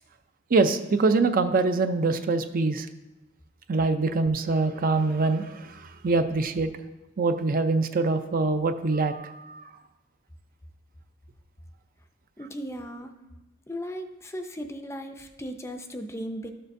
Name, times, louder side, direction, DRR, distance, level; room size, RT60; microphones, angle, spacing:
voice 1, 0.5-2.9 3.7-6.7 7.2-9.6, right 3 dB, 45° right, 9 dB, 0.5 m, -24 dB
voice 2, 12.4-13.1 13.7-16.5, equal, 15° left, 6 dB, 0.5 m, -36 dB
12.5 x 6.5 x 2.6 m, 1.0 s
head